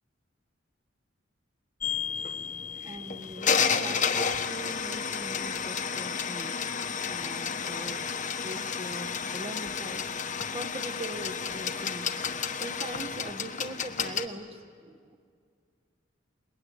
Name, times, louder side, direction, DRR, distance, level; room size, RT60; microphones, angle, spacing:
sound 1, 1.8-14.3, left 6 dB, 40° left, 1.2 m, -31 dB
voice 1, 2.8-6.6 7.1-10.1 10.5-12.1 12.5-15.2, right 1 dB, 30° right, 8 dB, 1.5 m, -42 dB
25.0 x 22.0 x 9.6 m, 2.1 s
head